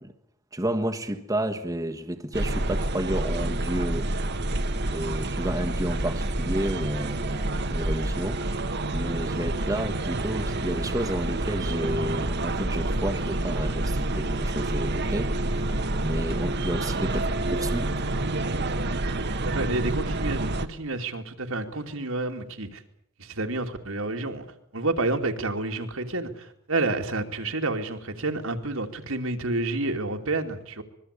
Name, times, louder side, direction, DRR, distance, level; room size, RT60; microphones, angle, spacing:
voice 1, 0.5-4.1 4.8-8.6 8.9-18.0, right 1 dB, 15° right, 1.5 m, -31 dB
sound 1, 2.3-20.7, right 2 dB, 50° right, 1.4 m, -28 dB
voice 2, 19.4-22.8 23.2-24.4 24.7-30.8, right 2 dB, 70° right, 2.7 m, -29 dB
25.5 x 22.0 x 8.4 m
head